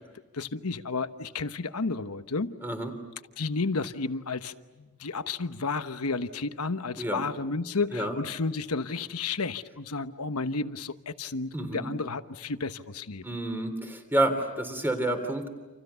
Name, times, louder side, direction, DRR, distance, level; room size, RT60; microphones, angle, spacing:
voice 1, 0.3-2.6 3.4-13.2, left 3 dB, 85° left, 10 dB, 1.2 m, -32 dB
voice 2, 11.5-11.9 13.2-15.5, right 1 dB, 10° right, 7 dB, 3.2 m, -29 dB
29.5 x 28.0 x 7.0 m, 1.1 s
head